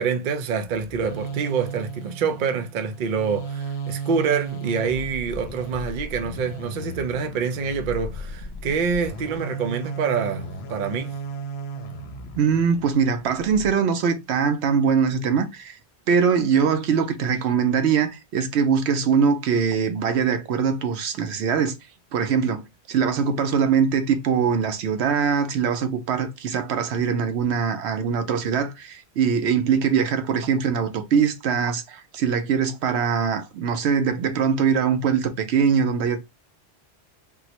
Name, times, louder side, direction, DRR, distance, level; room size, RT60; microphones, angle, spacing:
voice 1, 0.0-11.1, right 6 dB, 55° right, 0.6 m, -26 dB
sound 1, 0.7-13.7, right 3 dB, 75° left, 0.8 m, -35 dB
voice 2, 12.3-15.8 16.1-21.7 22.1-36.2, right 6 dB, 80° right, 0.9 m, -22 dB
3.9 x 2.1 x 2.8 m
omnidirectional pair, 1.1 m